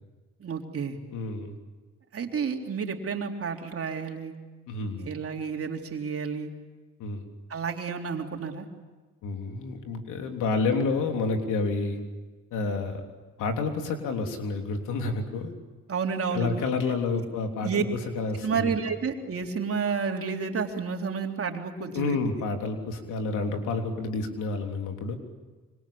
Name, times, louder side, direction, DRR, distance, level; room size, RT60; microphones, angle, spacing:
voice 1, 0.4-1.0 2.1-4.3 5.0-6.5 7.5-8.7 15.9-16.5 17.6-17.8 18.3-22.3, right 6 dB, 50° right, 3 dB, 3.6 m, -30 dB
voice 2, 1.1-1.5 4.7-5.1 7.0-7.2 9.2-12.0 12.5-13.0 13.4-15.5 16.3-17.8 18.1-18.7 21.9-25.2, left 3 dB, 90° left, 4 dB, 3.4 m, -29 dB
25.5 x 25.0 x 8.6 m, 1.2 s
cardioid pair, 90°, 30 cm